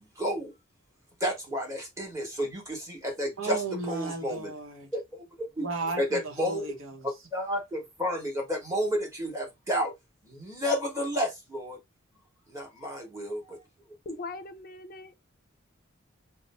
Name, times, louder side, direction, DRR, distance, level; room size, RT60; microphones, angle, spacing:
voice 1, 0.2-0.5 1.2-4.5 4.9-5.2 5.6-5.7 6.0-6.6 7.0-9.9 10.2-11.8 12.5-13.6, equal, 15° right, 1.4 m, -31 dB
voice 2, 3.4-4.9 5.6-7.1, right 3 dB, 90° right, 1.0 m, -35 dB
voice 3, 14.1-15.2, left 3 dB, 45° left, 0.5 m, -40 dB
3.0 x 2.3 x 4.2 m
head